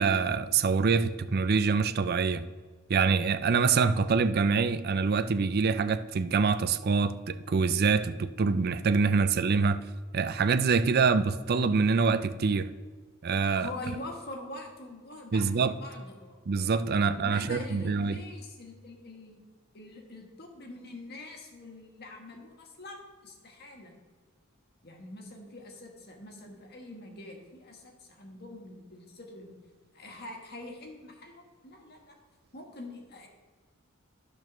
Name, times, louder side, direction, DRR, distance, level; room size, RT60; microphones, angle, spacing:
voice 1, 0.0-2.4 2.9-9.8 10.1-12.7 13.2-13.7 15.3-15.7 16.5-18.2, right 5 dB, 45° right, 0.4 m, -25 dB
voice 2, 13.5-16.4 17.0-19.4 19.7-23.9 24.8-29.5 29.9-32.2 32.5-33.3, left 2 dB, 50° left, 1.6 m, -44 dB
11.0 x 4.6 x 6.1 m
head